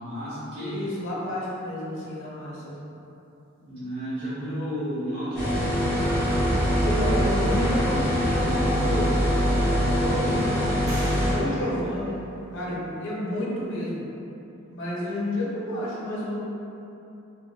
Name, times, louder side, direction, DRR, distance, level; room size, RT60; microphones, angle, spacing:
voice 1, 0.0-0.8 2.5-2.8 3.6-5.7, equal, 50° right, -15 dB, 0.9 m, -32 dB
voice 2, 0.6-2.7 6.8-9.2 9.6-10.5 11.2-12.2 12.5-14.1 14.7-16.4, left 1 dB, 60° left, -6 dB, 0.6 m, -30 dB
sound 1, 5.3-11.3, equal, 5° left, 1.1 m, -23 dB
sound 2, 8.6-8.7 9.3-9.9 10.9-12.8, equal, 90° right, 0.8 m, -42 dB
2.8 x 2.5 x 2.3 m, 2.9 s
head